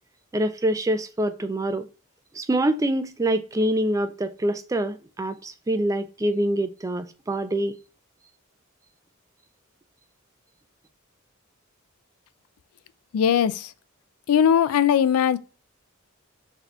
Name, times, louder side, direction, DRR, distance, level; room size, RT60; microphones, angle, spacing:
voice 1, 0.3-1.9 2.3-7.8, right 1 dB, 15° right, 0.3 m, -25 dB
voice 2, 13.1-13.7 14.3-15.4, left 8 dB, 80° left, 0.3 m, -19 dB
4.1 x 2.7 x 4.3 m
head